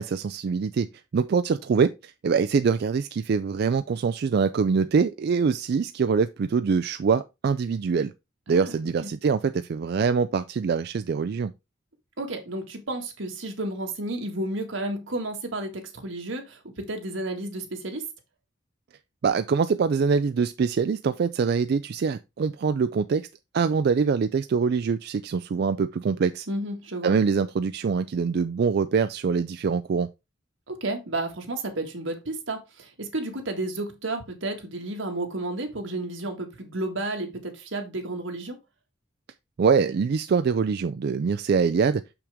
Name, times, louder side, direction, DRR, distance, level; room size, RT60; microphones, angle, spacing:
voice 1, 0.0-8.1 8.5-11.5 19.2-23.3 23.5-26.5 27.0-30.1 39.6-42.0, right 5 dB, 55° right, 0.4 m, -24 dB
voice 2, 12.2-18.0 26.5-27.1 30.7-38.6, right 2 dB, 85° right, 1.8 m, -32 dB
6.5 x 5.9 x 3.5 m
head